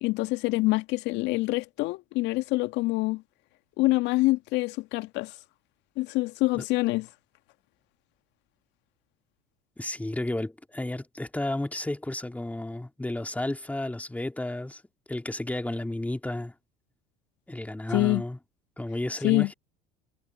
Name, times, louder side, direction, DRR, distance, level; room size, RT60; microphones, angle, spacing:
voice 1, 0.0-3.2 3.8-5.3 6.0-7.1 17.9-18.2 19.2-19.5, left 21 dB, 60° left, 1.8 m, -25 dB
voice 2, 9.8-14.8 15.1-16.5 17.5-18.4 18.8-19.5, left 1 dB, 5° left, 2.6 m, -32 dB
hypercardioid pair, 70°, 21 cm